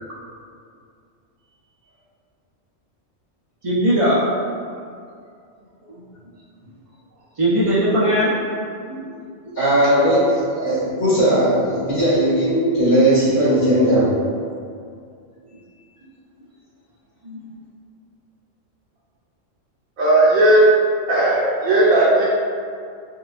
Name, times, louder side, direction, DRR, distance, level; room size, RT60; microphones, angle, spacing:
voice 1, 3.6-4.2 7.4-8.6 8.9-9.0 17.2-17.4, equal, 55° right, -9 dB, 0.3 m, -19 dB
voice 2, 9.6-14.1, right 1 dB, 75° left, -14 dB, 2.1 m, -17 dB
voice 3, 20.0-20.7 21.1-22.2, right 1 dB, 75° right, -8 dB, 1.0 m, -15 dB
4.7 x 2.3 x 2.4 m, 2.3 s
omnidirectional pair, 1.3 m